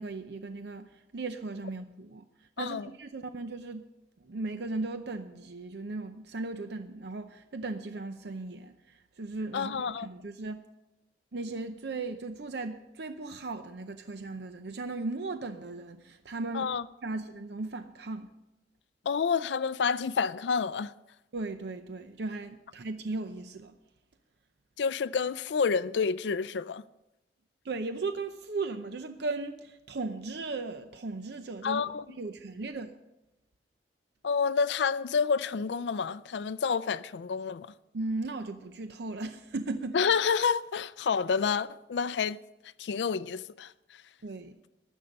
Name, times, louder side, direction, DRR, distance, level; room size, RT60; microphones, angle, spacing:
voice 1, 0.0-2.2 2.6-3.9 4.2-10.6 11.3-18.3 21.3-23.8 27.6-33.0 37.9-40.0 44.2-44.5, right 3 dB, 65° right, 0.6 m, -37 dB
voice 2, 2.6-2.9 9.5-10.1 16.5-16.8 19.1-20.9 24.8-26.8 31.6-32.1 34.2-37.7 39.9-42.4 42.8-44.0, left 6 dB, 70° left, 0.4 m, -29 dB
15.5 x 11.0 x 5.3 m
head